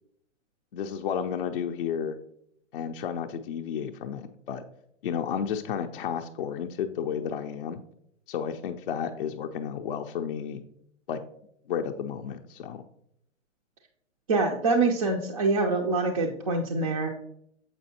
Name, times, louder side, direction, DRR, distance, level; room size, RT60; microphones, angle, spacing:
voice 1, 0.7-2.2 2.7-4.6 5.0-7.8 8.3-10.6 11.1-11.2 11.7-12.8, left 7 dB, 45° left, 4 dB, 0.4 m, -32 dB
voice 2, 14.3-17.1, right 3 dB, 30° right, 0 dB, 0.4 m, -25 dB
7.0 x 5.1 x 2.8 m, 0.73 s
hypercardioid pair, 130°, 38 cm